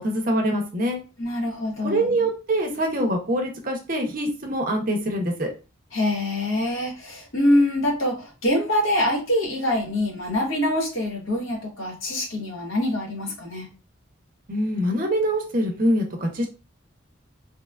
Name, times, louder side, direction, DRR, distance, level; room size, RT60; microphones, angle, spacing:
voice 1, 0.0-1.0 1.8-5.5 14.5-16.5, right 1 dB, 45° right, 2 dB, 0.6 m, -24 dB
voice 2, 1.2-2.2 5.9-13.7, left 1 dB, 75° left, -1 dB, 0.9 m, -24 dB
2.8 x 2.3 x 2.2 m, 0.32 s
head